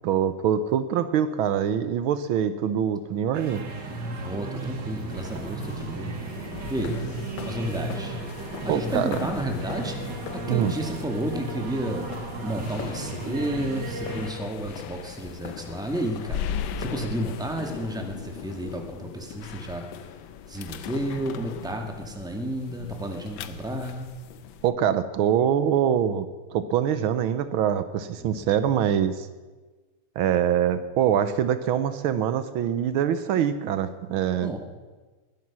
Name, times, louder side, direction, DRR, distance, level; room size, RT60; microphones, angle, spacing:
voice 1, 0.0-3.6 8.7-9.3 10.5-10.7 24.6-26.3 26.5-29.3 30.2-34.5, right 9 dB, 75° right, 12 dB, 1.5 m, -24 dB
sound 1, 3.3-14.3, right 2 dB, 55° right, 2.3 m, -35 dB
voice 2, 4.2-6.1 6.7-7.0 7.4-8.2 8.6-10.1 10.5-12.1 12.4-16.5 16.8-19.9 20.5-24.1 28.2-28.5 34.4-34.6, right 1 dB, ahead, 2 dB, 1.7 m, -31 dB
sound 2, 5.1-24.7, left 9 dB, 70° left, 1.4 m, -39 dB
20.5 x 11.0 x 6.0 m, 1.3 s
omnidirectional pair, 2.3 m